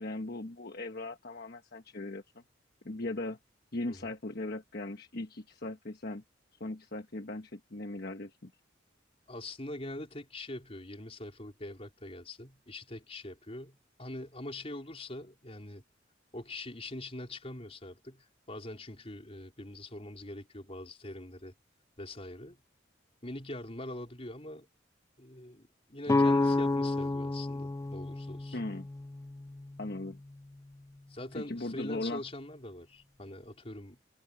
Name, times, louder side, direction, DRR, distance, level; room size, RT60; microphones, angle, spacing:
voice 1, 0.0-2.2 2.8-3.4 3.7-6.2 6.6-8.5 28.5-28.9 29.8-30.2 31.3-32.2, left 2 dB, 55° left, 1.2 m, -38 dB
voice 2, 9.3-15.8 16.3-21.5 22.0-22.6 23.2-24.7 25.2-28.6 31.1-34.0, left 1 dB, 30° left, 4.1 m, -43 dB
sound 1, 26.1-29.9, left 2 dB, 15° left, 0.3 m, -30 dB
head